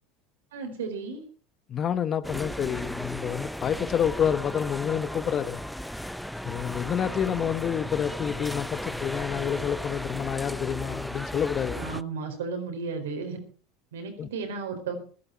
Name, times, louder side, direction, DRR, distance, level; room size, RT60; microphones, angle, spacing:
voice 1, 0.5-1.2 11.7-13.4 13.9-15.0, right 5 dB, 85° right, 4.3 m, -34 dB
voice 2, 1.7-5.6 6.4-11.8 14.2-14.3, left 8 dB, 40° left, 1.1 m, -28 dB
sound 1, 2.2-12.0, equal, ahead, 0.7 m, -35 dB
15.0 x 13.0 x 4.6 m
hypercardioid pair, 85°, 0 cm